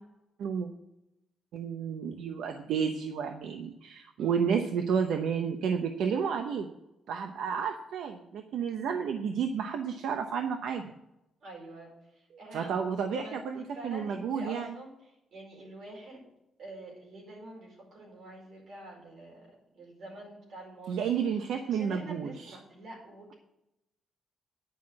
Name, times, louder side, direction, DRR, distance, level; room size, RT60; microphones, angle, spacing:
voice 1, 1.5-6.7 7.1-10.8 12.5-14.7 20.9-22.6, right 7 dB, 75° right, 5 dB, 0.8 m, -31 dB
voice 2, 11.4-16.3 16.6-21.1 21.7-23.3, right 1 dB, 45° right, -1 dB, 4.8 m, -47 dB
10.0 x 5.8 x 8.6 m, 0.88 s
cardioid pair, 180°, 0 cm